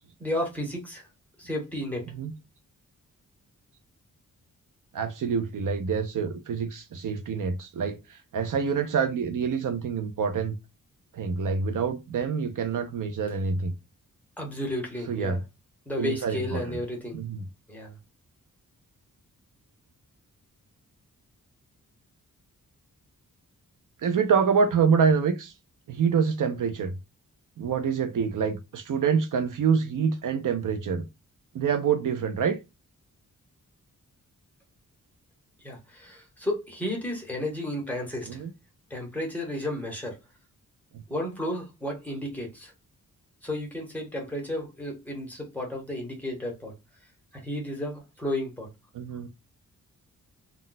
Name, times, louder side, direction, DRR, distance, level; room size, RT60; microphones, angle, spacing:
voice 1, 0.2-1.1 1.4-2.1 14.4-15.4 15.9-17.2 17.7-18.0 35.6-38.4 38.9-40.2 41.1-42.7 43.4-46.8 47.3-48.7, left 1 dB, 5° left, 0.9 m, -33 dB
voice 2, 4.9-10.5 11.1-13.7 15.1-15.4 16.0-16.8 17.1-17.4 24.0-25.5 25.9-26.9 27.6-31.0 31.5-32.6 38.3-38.5 40.9-41.0 48.9-49.3, right 6 dB, 65° right, 0.5 m, -26 dB
2.3 x 2.1 x 3.8 m
wide cardioid pair, 165°, 34 cm